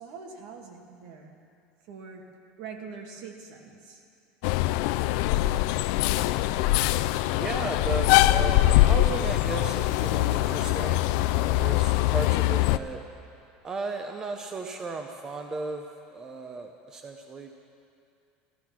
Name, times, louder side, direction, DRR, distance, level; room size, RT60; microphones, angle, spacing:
voice 1, 0.0-1.4 1.9-2.2 2.6-4.0, right 5 dB, 65° right, 1 dB, 2.0 m, -43 dB
sound 1, 4.4-12.8, left 16 dB, 70° left, 0.4 m, -23 dB
voice 2, 7.3-13.0 13.6-17.5, right 3 dB, 20° right, 4 dB, 0.7 m, -35 dB
14.5 x 13.0 x 6.0 m, 2.5 s
cardioid pair, 165°, 3 cm